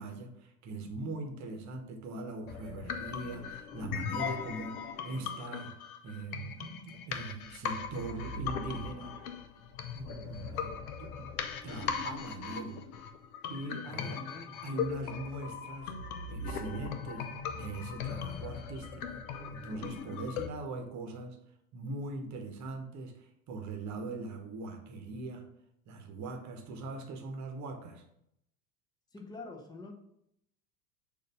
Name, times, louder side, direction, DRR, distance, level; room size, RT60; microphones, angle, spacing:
voice 1, 0.0-5.7 6.0-9.1 9.9-11.3 11.6-12.8 13.5-14.3 14.6-15.9 16.3-17.3 17.5-21.4 21.7-25.4 25.9-28.0, right 2 dB, 35° right, 5 dB, 1.1 m, -41 dB
sound 1, 2.5-20.5, left 6 dB, 65° left, 0.8 m, -39 dB
voice 2, 13.8-14.6 29.1-29.9, left 3 dB, 10° left, 2 dB, 0.8 m, -46 dB
6.5 x 2.7 x 5.4 m, 0.76 s
figure-of-eight pair, 80°, 48 cm